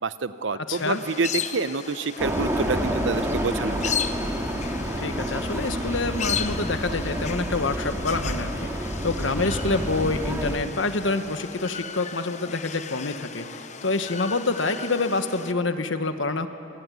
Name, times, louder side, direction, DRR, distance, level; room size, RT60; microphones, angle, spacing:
voice 1, 0.0-4.0, right 4 dB, 70° right, 13 dB, 0.8 m, -28 dB
voice 2, 0.5-1.0 5.0-16.5, left 3 dB, 75° left, 8 dB, 1.4 m, -27 dB
sound 1, 0.7-15.5, left 7 dB, 35° left, 0.8 m, -36 dB
sound 2, 2.2-10.6, equal, 15° right, 2.0 m, -29 dB
26.0 x 17.5 x 9.4 m, 2.9 s
head